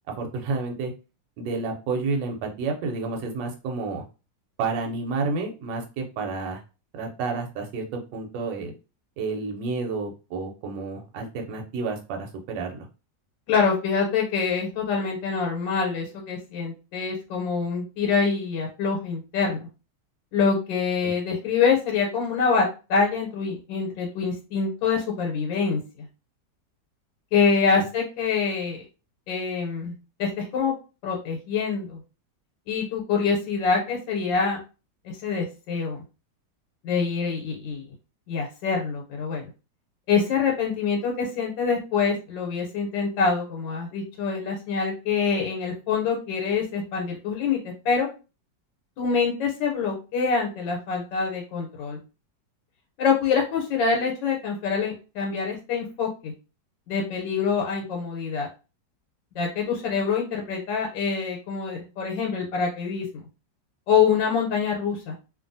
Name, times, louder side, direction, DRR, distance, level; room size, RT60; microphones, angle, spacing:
voice 1, 0.2-0.9 1.4-4.0 4.6-6.6 6.9-8.7 9.2-12.9 21.0-21.1, right 4 dB, 80° right, 2 dB, 1.3 m, -30 dB
voice 2, 13.5-19.6 20.3-25.8 27.3-28.8 29.3-29.9 30.2-30.7 31.0-32.0 32.7-34.6 35.0-36.0 36.8-37.8 38.3-39.5 40.1-48.1 49.0-52.0 53.0-56.3 56.9-58.5 59.3-63.1 63.9-65.2, left 5 dB, 85° left, 0 dB, 1.4 m, -25 dB
2.7 x 2.6 x 2.6 m, 0.31 s
omnidirectional pair, 2.0 m